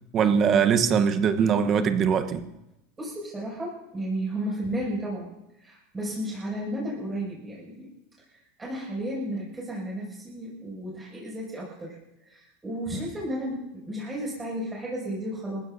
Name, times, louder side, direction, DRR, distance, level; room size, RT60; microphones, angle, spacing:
voice 1, 0.1-2.4, right 7 dB, 35° right, 10 dB, 1.1 m, -22 dB
voice 2, 3.0-5.3 5.6-7.9 8.6-12.0 12.2-15.6, right 1 dB, 15° right, -5 dB, 6.6 m, -33 dB
28.5 x 16.0 x 2.8 m, 0.89 s
supercardioid pair, 140°, 0 cm